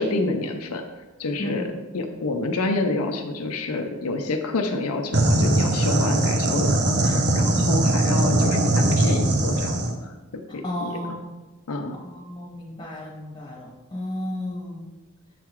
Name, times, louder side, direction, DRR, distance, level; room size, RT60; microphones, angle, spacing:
voice 1, 0.0-1.6 1.9-11.0 11.7-11.9, left 2 dB, 85° left, 3 dB, 0.6 m, -28 dB
voice 2, 1.4-1.7 7.6-7.7 10.5-11.3 12.0-14.9, left 1 dB, 20° left, -2 dB, 1.4 m, -33 dB
sound 1, 5.1-9.9, right 1 dB, 50° right, 0.7 m, -21 dB
7.4 x 3.8 x 4.6 m, 1.2 s
head